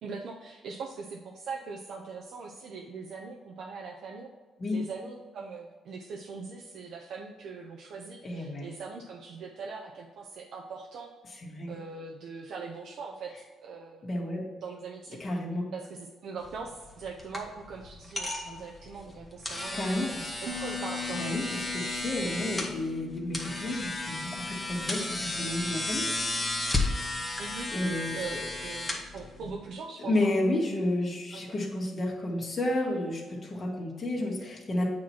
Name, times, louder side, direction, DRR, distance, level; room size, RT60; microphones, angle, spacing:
voice 1, 0.0-4.3 4.7-11.1 11.7-14.0 14.6-15.2 15.7-20.0 20.4-21.3 27.4-27.7 28.1-30.3 31.0-31.6, right 4 dB, 70° right, 0 dB, 0.7 m, -41 dB
voice 2, 8.2-8.7 11.4-11.8 14.0-14.4 15.2-15.7 19.7-20.3 21.1-21.4 21.7-26.1 27.7-28.2 30.0-34.8, left 1 dB, 35° left, -3 dB, 1.8 m, -31 dB
sound 1, 16.4-29.7, left 2 dB, 10° left, 1.3 m, -34 dB
Bass guitar, 20.5-29.8, left 6 dB, 55° right, 1.1 m, -44 dB
8.7 x 3.0 x 5.7 m, 1.3 s
cardioid pair, 90°, 0 cm